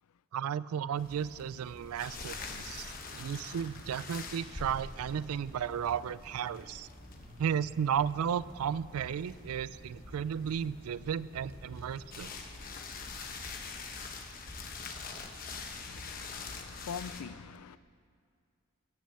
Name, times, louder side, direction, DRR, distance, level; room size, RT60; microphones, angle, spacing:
voice 1, 0.3-2.9 3.1-6.9 7.4-12.3, right 8 dB, 80° right, 0.3 m, -34 dB
sound 1, 1.0-17.2, left 4 dB, 40° left, 1.0 m, -45 dB
sound 2, 2.9-16.3, right 1 dB, 45° right, 1.6 m, -56 dB
voice 2, 15.7-17.8, left 6 dB, 85° left, 0.4 m, -44 dB
15.0 x 6.4 x 8.2 m
head